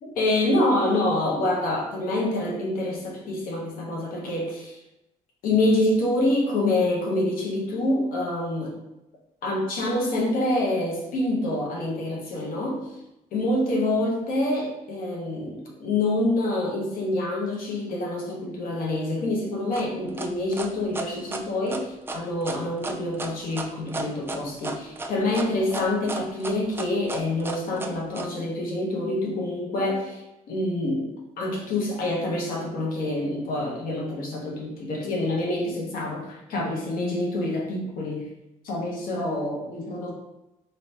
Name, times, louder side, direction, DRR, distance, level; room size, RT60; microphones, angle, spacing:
voice 1, 0.0-4.8 5.4-8.8 9.4-12.8 13.3-38.3 38.6-40.1, left 1 dB, 75° left, -2 dB, 1.0 m, -26 dB
sound 1, 19.7-28.3, right 3 dB, 15° right, 0.3 m, -33 dB
2.9 x 2.8 x 3.3 m, 0.91 s
cardioid pair, 95°, 15 cm